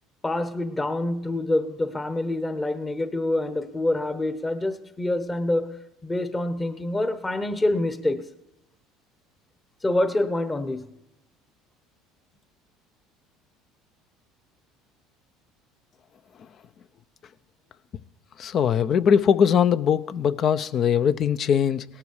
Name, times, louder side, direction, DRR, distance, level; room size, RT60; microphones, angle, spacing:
voice 1, 0.2-8.3 9.8-10.9, left 1 dB, 20° left, 1.1 m, -26 dB
voice 2, 18.4-21.8, left 8 dB, 50° left, 0.7 m, -21 dB
18.0 x 12.5 x 4.9 m
supercardioid pair, 90°, 0 cm